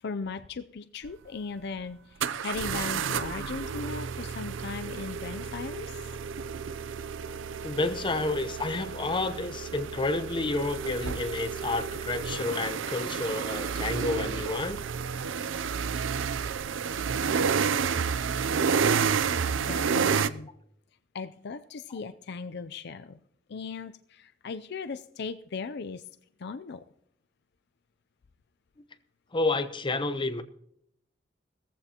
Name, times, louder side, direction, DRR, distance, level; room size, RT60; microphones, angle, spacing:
voice 1, 0.0-6.0 19.5-20.5 21.1-23.2 23.5-26.0 26.4-26.8, left 4 dB, 60° left, 11 dB, 0.5 m, -38 dB
sound 1, 1.0-1.1 2.2-20.3, right 6 dB, 90° right, 0.5 m, -30 dB
voice 2, 7.6-14.8 29.3-30.4, left 2 dB, 25° left, 9 dB, 0.8 m, -30 dB
17.0 x 14.5 x 2.9 m, 0.72 s
head